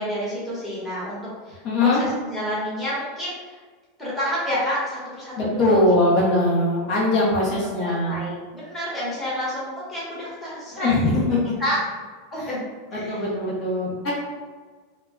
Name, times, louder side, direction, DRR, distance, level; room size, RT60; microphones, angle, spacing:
voice 1, 0.0-3.6 4.0-5.8 6.1-6.2 7.8-10.9 11.2-11.8 12.3-12.6 12.9-13.2, equal, 5° left, -9 dB, 1.0 m, -29 dB
voice 2, 1.6-2.0 5.4-8.2 10.7-11.4 13.1-14.1, left 2 dB, 50° left, -5 dB, 0.8 m, -21 dB
2.1 x 2.1 x 3.5 m, 1.4 s
supercardioid pair, 145°, 0 cm